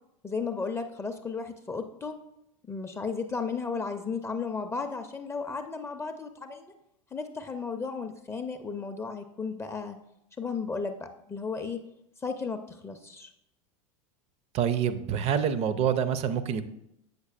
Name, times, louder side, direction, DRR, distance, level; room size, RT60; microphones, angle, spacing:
voice 1, 0.2-2.2 2.7-6.7 7.1-10.0 10.4-11.8 12.2-13.3, left 4 dB, 15° left, 6 dB, 0.4 m, -34 dB
voice 2, 14.5-16.6, right 8 dB, 35° right, 13 dB, 0.5 m, -26 dB
8.0 x 6.5 x 2.5 m, 0.80 s
hypercardioid pair, 85°, 18 cm